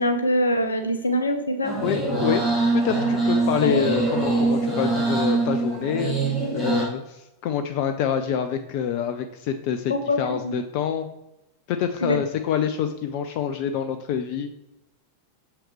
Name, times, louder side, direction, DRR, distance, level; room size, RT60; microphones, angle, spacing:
voice 1, 0.0-1.7 3.6-3.8 9.9-10.6 12.0-12.2, left 1 dB, 75° left, 8 dB, 0.8 m, -24 dB
sound 1, 1.6-6.8, right 3 dB, 5° right, 2.5 m, -23 dB
voice 2, 1.8-2.5 2.7-11.1 11.7-14.5, left 8 dB, 45° left, 8 dB, 0.5 m, -26 dB
sound 2, 2.8-6.6, left 2 dB, 20° left, 2.6 m, -43 dB
7.1 x 5.8 x 3.2 m, 0.89 s
figure-of-eight pair, 90°, 0 cm